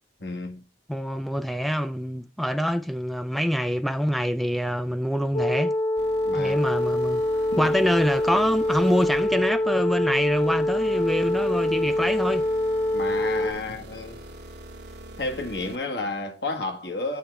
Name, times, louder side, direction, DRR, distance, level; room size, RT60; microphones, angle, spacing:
voice 1, 0.2-0.6 6.2-6.6 7.5-7.7 12.9-14.2 15.2-17.2, left 2 dB, 70° left, 1.7 m, -31 dB
voice 2, 0.9-5.8 6.3-7.2 7.6-12.4, equal, ahead, 0.3 m, -25 dB
sound 1, 5.3-13.5, left 1 dB, 30° left, 1.0 m, -25 dB
sound 2, 6.0-15.8, right 2 dB, 70° right, 1.2 m, -43 dB
8.6 x 3.4 x 6.7 m
head